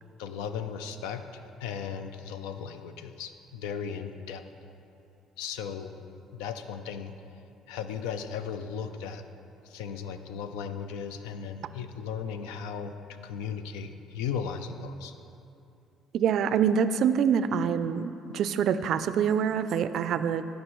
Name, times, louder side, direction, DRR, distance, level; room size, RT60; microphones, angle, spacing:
voice 1, 0.2-4.4 5.4-6.0 6.3-7.1 7.7-9.2 9.6-12.9 13.2-15.1, left 7 dB, 85° left, 9 dB, 0.4 m, -36 dB
voice 2, 16.1-20.5, right 7 dB, 65° right, 13 dB, 0.3 m, -25 dB
13.5 x 5.2 x 3.0 m, 2.7 s
supercardioid pair, 70°, 0 cm